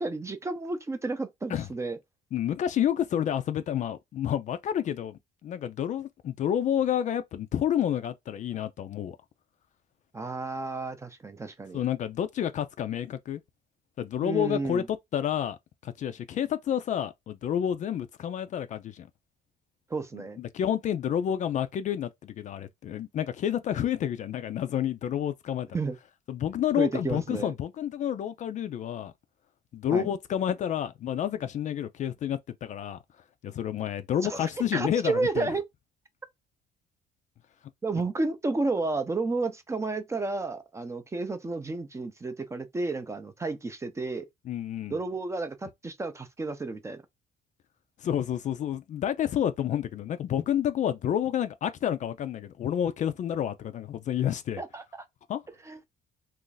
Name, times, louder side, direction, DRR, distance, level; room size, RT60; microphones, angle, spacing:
voice 1, 0.0-2.0 10.1-11.8 14.2-14.9 19.9-20.4 25.7-26.0 26.7-27.5 29.9-30.1 34.2-35.7 37.8-44.3 44.9-47.0 54.6-55.0 55.6-55.8, right 3 dB, 15° right, 0.5 m, -31 dB
voice 2, 2.3-9.2 11.7-13.4 14.0-15.6 15.8-19.1 20.1-25.7 26.3-29.1 29.7-33.0 33.4-35.5 44.5-45.0 48.0-54.6 55.3-55.4, left 10 dB, 45° left, 0.4 m, -29 dB
2.6 x 2.4 x 3.8 m
cardioid pair, 110°, 17 cm